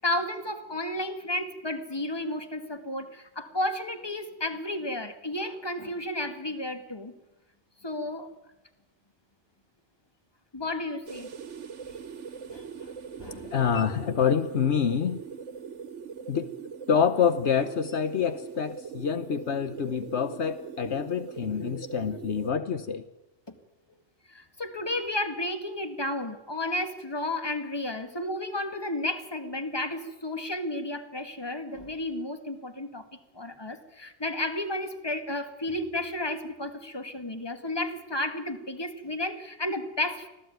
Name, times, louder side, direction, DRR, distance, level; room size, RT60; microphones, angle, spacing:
voice 1, 0.0-7.1 7.8-8.3 10.5-11.3 12.5-12.9 13.2-13.6 24.3-33.1 33.3-40.3, left 1 dB, 20° left, 8 dB, 2.0 m, -32 dB
sound 1, 11.1-22.5, right 6 dB, 85° right, 1.4 m, -41 dB
voice 2, 13.5-15.2 16.3-16.5 16.9-23.0, left 7 dB, 70° left, 12 dB, 1.2 m, -26 dB
25.0 x 16.0 x 9.2 m, 0.99 s
omnidirectional pair, 1.2 m